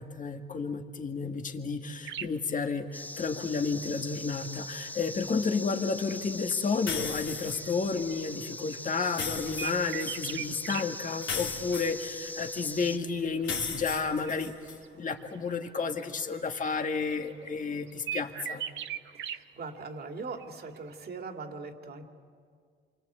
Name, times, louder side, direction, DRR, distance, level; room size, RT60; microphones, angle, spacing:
voice 1, 0.0-18.6, left 4 dB, 40° left, 5 dB, 2.0 m, -31 dB
sound 1, 2.0-2.4 3.5-3.6 4.4-9.1 9.6-10.8 11.1-11.6 11.8-12.3 13.1-14.9 15.1-15.7 16.0-16.1 16.3-17.5 17.7-19.4 19.8-19.9 20.2-20.7 20.9-21.1, right 9 dB, 70° right, 1.0 m, -40 dB
sound 2, 2.9-13.0, left 1 dB, 10° left, 0.7 m, -42 dB
sound 3, 6.9-7.8 9.0-10.2 11.2-12.6 13.4-14.8, left 6 dB, 75° left, 3.5 m, -36 dB
voice 2, 19.1-22.1, right 4 dB, 50° right, 4 dB, 2.4 m, -41 dB
28.0 x 24.0 x 8.1 m, 2.1 s
cardioid pair, 90°, 20 cm